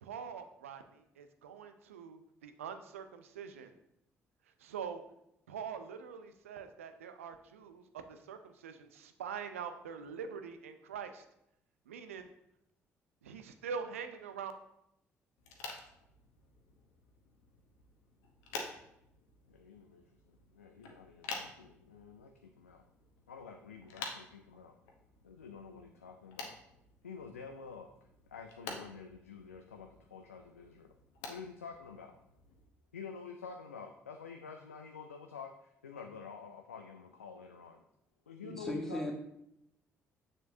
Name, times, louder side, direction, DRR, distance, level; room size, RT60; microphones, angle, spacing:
voice 1, 0.0-3.7 4.6-5.0 5.5-11.2 11.9-12.3 13.2-14.5, right 6 dB, 85° right, 9 dB, 0.5 m, -44 dB
sound 1, 15.4-32.7, left 4 dB, 75° left, 0.9 m, -50 dB
voice 2, 19.5-20.0 20.5-22.8 23.3-24.8 25.2-26.6 27.0-27.9 28.3-30.9 31.3-32.1 32.9-37.8 38.3-39.1, left 6 dB, 90° left, 4 dB, 0.3 m, -48 dB
voice 3, 38.4-39.1, left 1 dB, 5° left, 0 dB, 1.8 m, -37 dB
7.3 x 6.7 x 2.7 m, 0.78 s
figure-of-eight pair, 45°, 7 cm